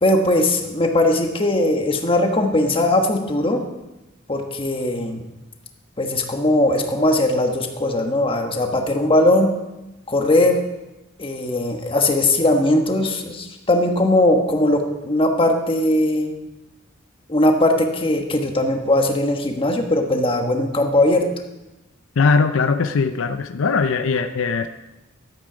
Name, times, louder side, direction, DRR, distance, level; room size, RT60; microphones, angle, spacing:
voice 1, 0.0-3.6 4.3-5.2 6.0-9.5 10.1-10.6 11.2-16.3 17.3-21.2, left 1 dB, 25° left, 3 dB, 1.2 m, -19 dB
voice 2, 22.2-24.7, left 4 dB, 75° left, 9 dB, 0.5 m, -20 dB
12.5 x 8.3 x 5.0 m, 1.0 s
head